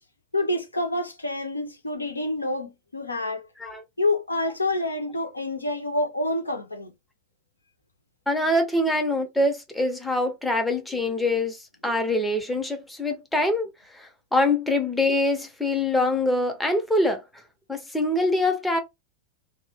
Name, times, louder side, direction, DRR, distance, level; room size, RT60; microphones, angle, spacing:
voice 1, 0.3-3.5 4.0-6.9, left 2 dB, 80° left, 0.6 m, -27 dB
voice 2, 8.3-13.7 13.9-17.2 17.7-18.8, left 1 dB, 5° left, 0.6 m, -24 dB
2.1 x 2.0 x 3.2 m
figure-of-eight pair, 90°, 0 cm